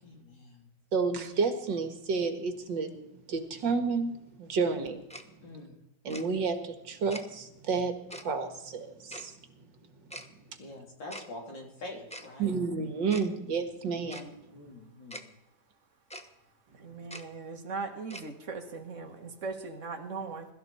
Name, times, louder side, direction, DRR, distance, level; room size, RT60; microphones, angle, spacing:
voice 1, 0.0-0.7 5.4-5.8 10.6-12.5 14.5-15.3, left 1 dB, 70° left, 0 dB, 3.9 m, -45 dB
voice 2, 0.9-5.0 6.0-9.3 12.4-14.3, right 4 dB, 70° right, 7 dB, 2.2 m, -31 dB
Tick-tock, 5.1-5.2 6.1-6.2 7.1-7.2 8.1-8.2 9.1-9.3 10.1-10.3 11.1-11.3 12.1-12.3 13.1-13.3 14.1-14.2 15.1-15.2 16.1-16.3 17.1-17.2 18.1-18.3, equal, 5° left, 0.5 m, -42 dB
voice 3, 16.8-20.5, right 4 dB, 40° right, 4 dB, 2.0 m, -39 dB
22.5 x 13.5 x 4.3 m, 0.88 s
omnidirectional pair, 2.1 m